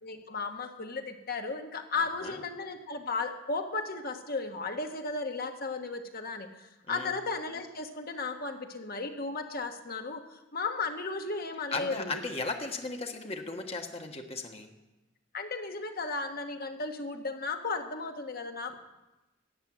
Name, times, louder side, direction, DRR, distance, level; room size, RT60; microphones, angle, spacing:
voice 1, 0.0-6.5 6.9-12.2 15.3-18.8, left 3 dB, 50° left, 5 dB, 1.3 m, -35 dB
voice 2, 11.7-14.7, left 3 dB, 30° left, 3 dB, 1.4 m, -36 dB
14.0 x 7.9 x 9.0 m, 1.0 s
head